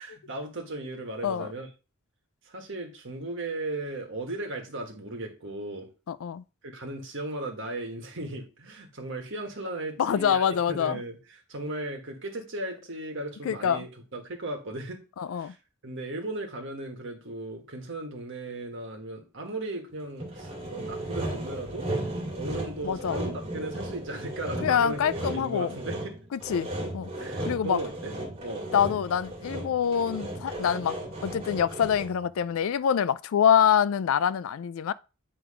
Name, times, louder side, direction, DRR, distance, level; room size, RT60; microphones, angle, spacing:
voice 1, 0.0-1.7 2.4-5.9 6.6-15.0 15.3-15.6 15.8-21.9 22.3-26.2 27.2-28.1 28.4-28.7, right 2 dB, 60° right, 1.7 m, -36 dB
voice 2, 6.1-6.4 10.0-11.0 13.4-13.8 15.2-15.5 22.8-23.2 24.6-25.7 26.3-26.7 26.9-27.1 27.4-27.8 28.7-34.9, left 8 dB, 70° left, 0.3 m, -25 dB
Sawing, 20.2-32.3, right 1 dB, 30° right, 2.0 m, -35 dB
8.6 x 3.4 x 5.0 m
head